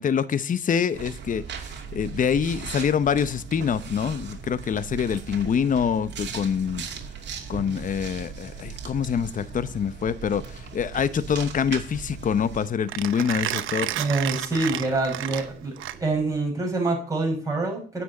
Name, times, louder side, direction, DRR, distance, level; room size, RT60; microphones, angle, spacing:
voice 1, 0.0-6.9 7.5-13.9, left 7 dB, 40° left, 14 dB, 0.8 m, -25 dB
sound 1, 0.9-12.7, right 6 dB, 60° right, 2.5 m, -38 dB
Mechanisms, 10.3-16.4, right 13 dB, 85° right, 0.9 m, -32 dB
voice 2, 14.0-15.7 16.0-18.0, right 3 dB, 15° right, -2 dB, 5.9 m, -26 dB
9.7 x 6.1 x 8.3 m, 0.41 s
cardioid pair, 90°, 20 cm